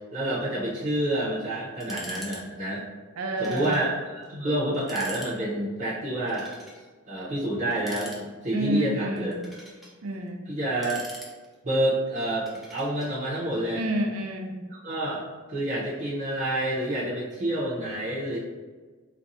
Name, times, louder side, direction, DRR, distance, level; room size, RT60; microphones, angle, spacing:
voice 1, 0.1-2.8 3.4-6.5 7.1-9.6 10.5-11.0 11.6-13.8 14.7-18.4, right 1 dB, 40° right, -9 dB, 0.7 m, -28 dB
sound 1, 1.8-2.4 2.7-2.8 3.4-3.9 4.2-4.3 4.7-5.3 6.3-6.8 7.7-8.6 9.2-9.9 10.6-11.7 12.5-13.1, equal, ahead, 0.5 m, -43 dB
voice 2, 3.2-3.8 8.5-9.4 10.0-10.4 13.7-14.6, right 1 dB, 80° right, 3 dB, 0.5 m, -29 dB
4.0 x 2.2 x 2.6 m, 1.4 s
head